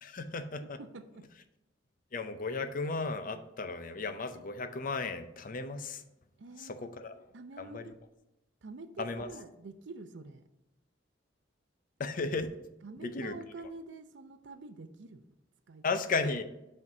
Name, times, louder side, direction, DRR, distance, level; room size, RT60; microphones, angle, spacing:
voice 1, 0.0-0.8 2.1-6.0 6.6-7.3 7.6-7.9 9.0-9.3 12.0-12.5 13.0-13.4 15.8-16.4, left 3 dB, 45° left, 9 dB, 0.6 m, -35 dB
voice 2, 0.8-1.2 6.4-6.7 7.3-8.0 8.6-10.4 12.8-15.3 15.7-15.8, right 3 dB, 70° right, 10 dB, 0.6 m, -46 dB
6.0 x 4.5 x 5.4 m, 0.96 s
head